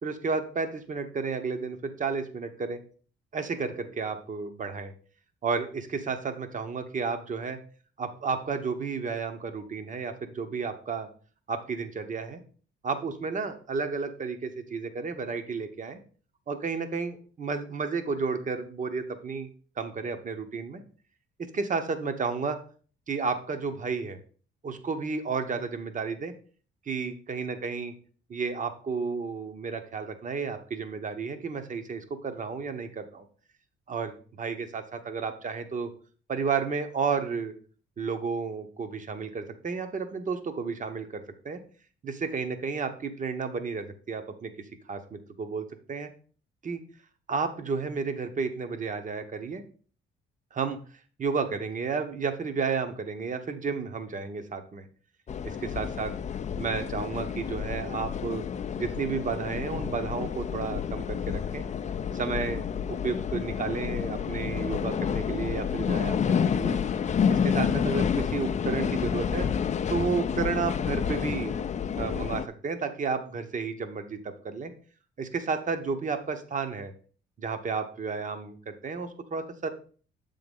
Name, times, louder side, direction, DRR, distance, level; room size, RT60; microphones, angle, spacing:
voice 1, 0.0-2.8 3.3-4.9 5.4-7.6 8.0-11.1 11.5-12.4 12.8-16.0 16.5-19.5 19.8-20.8 21.4-22.6 23.1-24.2 24.6-26.3 26.9-27.9 28.3-33.2 33.9-35.9 36.3-37.5 38.0-41.6 42.0-44.5 44.9-46.1 46.6-46.8 47.3-49.6 50.5-50.8 51.2-54.9 55.4-56.1 56.6-58.4 58.8-61.6 62.1-66.8 67.3-69.5 69.9-71.5 71.9-74.7 75.2-76.9 77.4-79.7, right 5 dB, 40° right, 8 dB, 1.1 m, -32 dB
sound 1, 55.3-72.5, left 7 dB, 35° left, 0.4 m, -29 dB
7.3 x 3.8 x 5.4 m, 0.41 s
cardioid pair, 90°, 20 cm